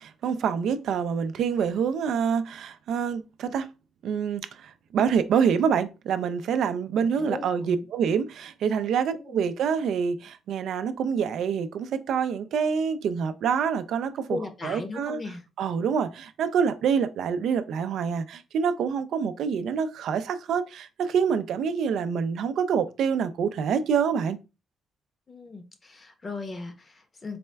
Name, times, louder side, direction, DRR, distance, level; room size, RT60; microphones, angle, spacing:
voice 1, 0.0-3.7 4.0-15.2 15.6-24.4, right 7 dB, 75° right, 0.3 m, -26 dB
voice 2, 7.2-7.9 9.1-9.4 14.3-15.4 25.3-27.4, left 3 dB, 30° left, 0.8 m, -37 dB
4.1 x 2.1 x 3.3 m
cardioid pair, 90°, 0 cm